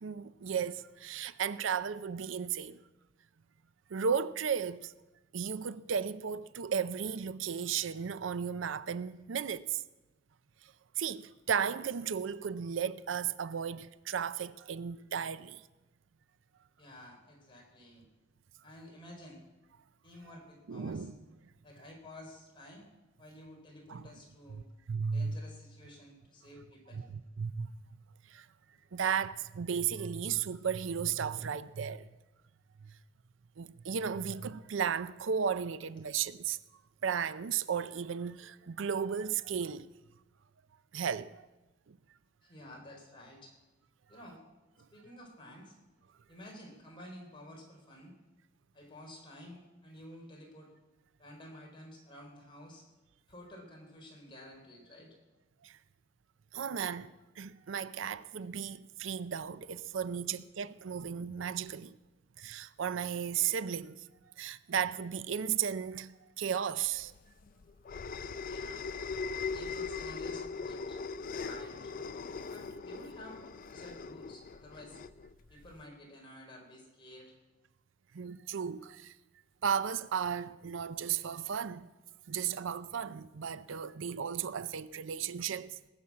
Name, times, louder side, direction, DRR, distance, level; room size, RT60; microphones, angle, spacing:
voice 1, 0.0-2.8 3.9-4.9 5.3-9.8 11.0-15.6 20.7-21.2 23.9-24.0 24.9-25.4 26.9-27.7 28.3-28.5 28.9-32.1 32.8-32.9 33.6-36.6 37.0-39.9 40.9-41.5 41.9-42.0 55.6-55.8 56.5-62.0 62.4-64.0 64.4-67.1 78.1-79.1 79.6-81.9 82.3-85.9, right 7 dB, 75° right, 0.5 m, -35 dB
voice 2, 16.8-18.1 18.6-19.4 20.0-21.1 21.6-22.9 23.2-24.6 25.1-27.1 42.4-43.5 44.1-44.4 44.9-45.8 46.3-48.1 48.7-50.7 51.2-52.9 53.3-55.2 60.1-60.4 68.2-68.9 69.5-71.0 71.4-71.9 72.5-75.0 75.5-77.4, left 1 dB, 25° left, 4.1 m, -52 dB
sound 1, 67.0-75.8, left 4 dB, 45° left, 0.4 m, -40 dB
19.0 x 7.3 x 8.4 m
head